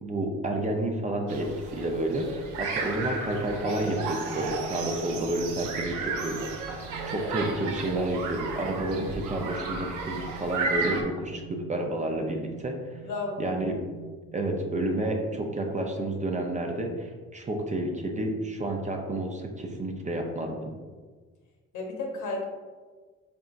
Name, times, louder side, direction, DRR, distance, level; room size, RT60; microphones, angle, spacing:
voice 1, 0.0-6.4 6.7-11.4 11.7-13.0 13.4-13.7 14.3-20.7, right 1 dB, 25° right, 2 dB, 0.5 m, -30 dB
sound 1, 1.3-11.0, right 4 dB, 90° right, 0.6 m, -34 dB
sound 2, 3.6-15.3, right 8 dB, 40° left, 0.7 m, -46 dB
voice 2, 13.0-13.4 21.7-22.4, left 3 dB, 80° left, 0 dB, 0.9 m, -33 dB
3.9 x 3.5 x 2.5 m, 1.5 s
cardioid pair, 90°, 30 cm